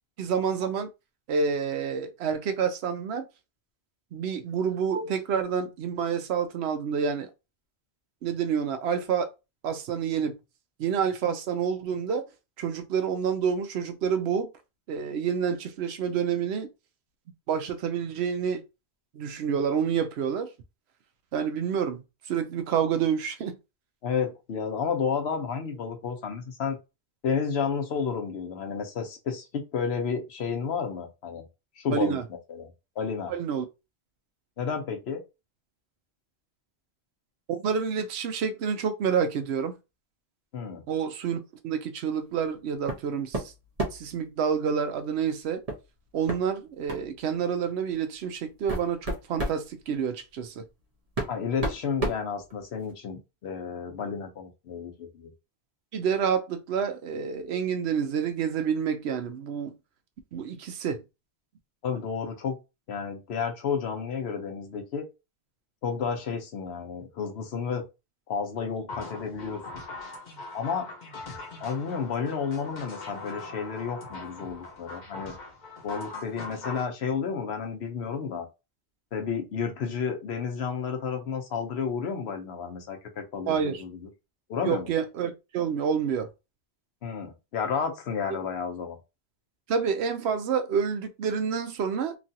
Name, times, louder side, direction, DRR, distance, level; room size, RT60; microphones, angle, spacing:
voice 1, 0.2-0.9 1.3-3.2 4.1-7.3 8.2-9.3 9.6-10.3 10.8-12.2 12.6-14.5 14.9-16.7 17.5-18.6 19.1-20.5 21.3-22.0 22.3-23.6 31.9-32.2 33.3-33.7 37.6-39.8 40.9-43.5 43.9-45.6 46.1-50.6 55.9-59.8 60.3-61.0 83.5-83.8 84.6-86.3 89.7-92.2, right 7 dB, 85° right, 0.9 m, -28 dB
voice 2, 24.0-26.8 27.2-31.4 31.8-32.7 33.0-33.3 34.6-35.2 40.5-40.8 51.3-55.3 61.8-62.6 62.9-65.1 65.8-67.9 68.3-69.8 70.5-70.9 71.6-75.4 75.8-78.5 79.1-84.1 84.5-84.9 87.0-89.0, left 6 dB, 80° left, 1.0 m, -31 dB
sound 1, 42.9-43.1 43.3-44.1 45.7-45.8 46.3-46.4 46.9-47.1 47.9-48.0 48.5-49.6 50.7-50.8 51.2-52.9, right 2 dB, 40° right, 0.9 m, -31 dB
sound 2, 68.9-76.9, left 3 dB, 50° left, 0.9 m, -41 dB
3.0 x 2.4 x 2.7 m
omnidirectional pair, 1.1 m